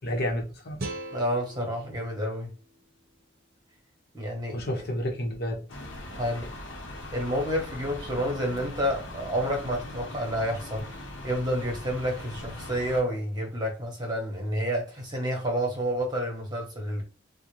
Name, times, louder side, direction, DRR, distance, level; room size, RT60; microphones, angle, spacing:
voice 1, 0.0-0.8 4.5-5.8, equal, 60° left, 1.0 m, -30 dB
sound 1, 0.8-3.9, right 2 dB, 55° right, 0.6 m, -42 dB
voice 2, 1.1-2.5 4.1-4.6 6.1-6.5 7.1-17.0, equal, 20° right, 1.1 m, -29 dB
sound 2, 5.7-13.0, left 1 dB, 80° left, 0.9 m, -40 dB
3.9 x 2.2 x 3.1 m
head